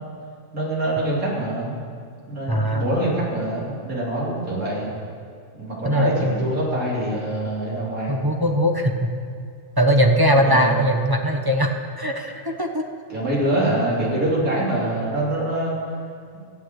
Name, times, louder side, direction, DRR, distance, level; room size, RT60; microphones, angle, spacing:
voice 1, 0.5-1.8 2.3-4.9 5.5-8.2 10.3-10.7 13.1-15.7, right 1 dB, 85° right, -6 dB, 3.9 m, -25 dB
voice 2, 2.5-2.9 5.8-6.6 8.1-9.1 9.8-11.7 12.0-12.8, equal, 20° right, 2 dB, 0.8 m, -20 dB
15.0 x 8.3 x 8.0 m, 2.3 s
omnidirectional pair, 1.4 m